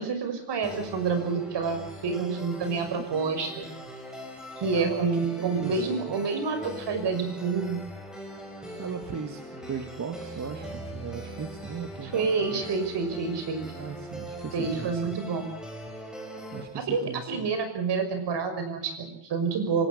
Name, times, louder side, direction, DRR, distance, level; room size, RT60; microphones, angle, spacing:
voice 1, 0.0-3.7 4.6-7.8 12.1-13.6 14.5-15.5 16.7-19.9, right 5 dB, 65° right, 8 dB, 6.1 m, -28 dB
sound 1, 0.6-16.6, equal, ahead, 5.8 m, -41 dB
voice 2, 4.7-5.9 8.8-12.6 13.7-15.2 16.5-17.5, right 6 dB, 40° right, 6 dB, 2.0 m, -37 dB
25.0 x 18.5 x 8.5 m, 0.70 s
wide cardioid pair, 170°, 45 cm